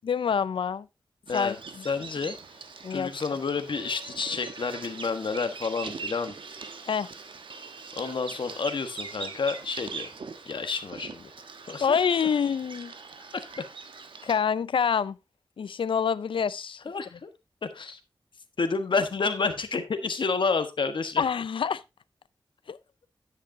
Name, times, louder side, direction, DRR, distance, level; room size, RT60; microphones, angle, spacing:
voice 1, 0.1-0.9 1.3-1.6 2.8-3.1 6.8-7.1 11.8-12.9 14.2-15.2 15.6-16.8 21.2-21.8 22.7-22.8, left 7 dB, 90° left, 0.5 m, -26 dB
Bird vocalization bird call bird song, 1.3-14.4, right 4 dB, 80° right, 1.2 m, -42 dB
voice 2, 1.8-2.4 2.9-6.3 7.9-10.1 10.5-11.3 11.6-12.0 13.3-13.7 16.8-17.3 17.6-18.0 18.6-21.2, left 4 dB, 70° left, 1.3 m, -30 dB
10.5 x 9.6 x 2.7 m
wide cardioid pair, 90°, 9 cm